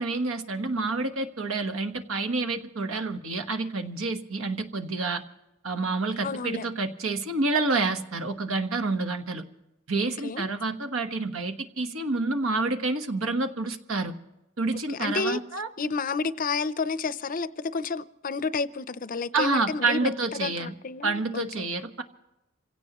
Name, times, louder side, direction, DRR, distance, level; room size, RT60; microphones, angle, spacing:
voice 1, 0.0-5.2 5.6-9.4 9.9-14.1 14.6-15.7 19.3-20.7 21.0-22.0, right 3 dB, 80° right, 1.3 m, -28 dB
voice 2, 6.2-6.7 10.2-10.5 14.9-15.4 15.8-21.7, left 4 dB, 40° left, 0.5 m, -30 dB
27.0 x 17.0 x 3.0 m
head